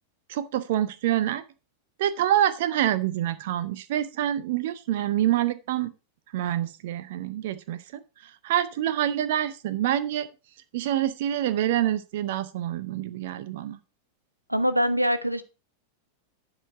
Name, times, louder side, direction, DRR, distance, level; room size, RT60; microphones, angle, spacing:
voice 1, 0.3-1.4 2.0-5.9 6.3-10.3 10.7-13.8, right 12 dB, 55° right, 14 dB, 0.6 m, -26 dB
voice 2, 14.5-15.4, equal, 85° right, 12 dB, 0.8 m, -23 dB
11.0 x 4.9 x 5.6 m, 0.31 s
figure-of-eight pair, 90°, 0 cm